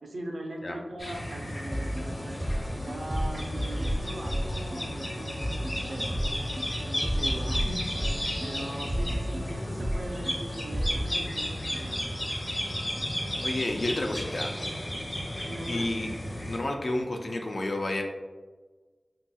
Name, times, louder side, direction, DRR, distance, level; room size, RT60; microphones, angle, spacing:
voice 1, 0.0-2.4 2.7-6.2 6.8-8.1 8.4-12.1 15.4-15.9, right 1 dB, 85° right, 1 dB, 0.4 m, -40 dB
sound 1, 1.0-16.6, equal, 50° left, 0.8 m, -34 dB
sound 2, 1.7-11.0, equal, 10° right, 0.4 m, -33 dB
voice 2, 13.4-14.6 15.7-16.1 16.4-18.0, left 1 dB, 65° left, 2 dB, 0.4 m, -30 dB
3.3 x 2.8 x 2.2 m, 1.3 s
wide cardioid pair, 75°, 0 cm